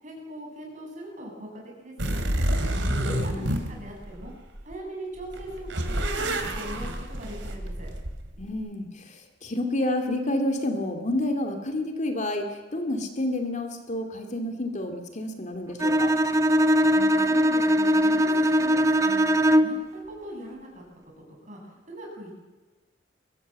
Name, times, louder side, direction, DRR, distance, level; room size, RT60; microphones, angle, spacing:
voice 1, 0.0-2.2 3.0-4.3 4.6-7.9 16.9-19.3 19.6-20.8 21.5-22.4, right 1 dB, 40° right, -1 dB, 7.7 m, -40 dB
sound 1, 2.0-4.7 5.2-8.5, right 1 dB, 90° right, 2.9 m, -29 dB
voice 2, 2.7-3.6 8.4-16.1, left 1 dB, 40° left, 5 dB, 2.6 m, -30 dB
Bowed string instrument, 15.8-19.9, equal, 15° right, 1.0 m, -21 dB
23.0 x 17.0 x 7.7 m, 1.2 s
head